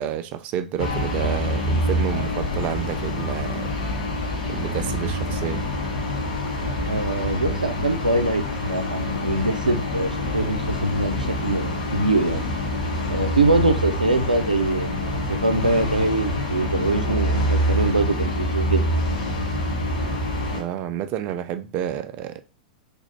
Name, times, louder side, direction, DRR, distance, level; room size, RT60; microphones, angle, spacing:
voice 1, 0.0-3.7 4.5-5.7 20.5-22.4, right 10 dB, 35° right, 0.4 m, -29 dB
sound 1, 0.8-20.6, left 1 dB, 60° left, 1.5 m, -26 dB
voice 2, 6.8-8.4 8.7-12.4 13.1-18.8, right 2 dB, 85° right, 0.6 m, -23 dB
3.4 x 2.5 x 4.3 m
figure-of-eight pair, 95°, 4 cm